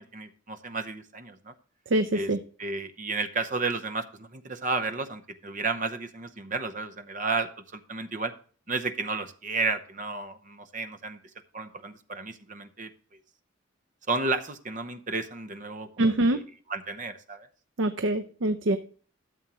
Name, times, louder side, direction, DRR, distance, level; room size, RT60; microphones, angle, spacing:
voice 1, 0.0-1.5 2.1-2.3 2.6-8.3 8.7-11.2 11.5-12.9 14.1-16.1 16.7-17.5, right 3 dB, 40° right, 9 dB, 0.8 m, -32 dB
voice 2, 1.9-2.4 16.0-16.4 17.8-18.8, right 1 dB, 70° right, 8 dB, 0.6 m, -24 dB
12.5 x 7.3 x 2.9 m, 0.43 s
head